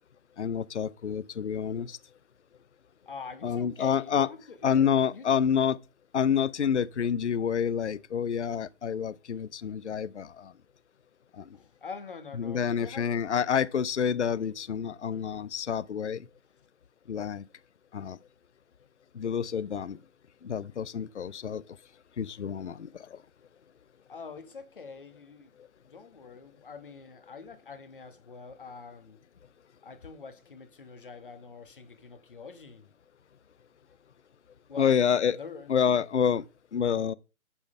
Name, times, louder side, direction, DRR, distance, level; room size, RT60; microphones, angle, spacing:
voice 1, 0.4-2.0 3.4-4.3 4.6-5.8 6.1-10.5 11.4-11.5 12.4-16.3 17.1-17.4 17.9-18.2 19.1-20.0 20.4-21.6 22.2-23.2 34.8-35.4 35.7-36.4 36.7-37.1, left 7 dB, 55° left, 0.5 m, -28 dB
voice 2, 3.1-5.4 11.5-13.1 24.1-25.5 25.9-29.2 29.8-32.9 34.7-35.0 35.4-35.7, left 5 dB, 35° left, 1.2 m, -45 dB
6.9 x 6.3 x 5.3 m
hypercardioid pair, 170°, 43 cm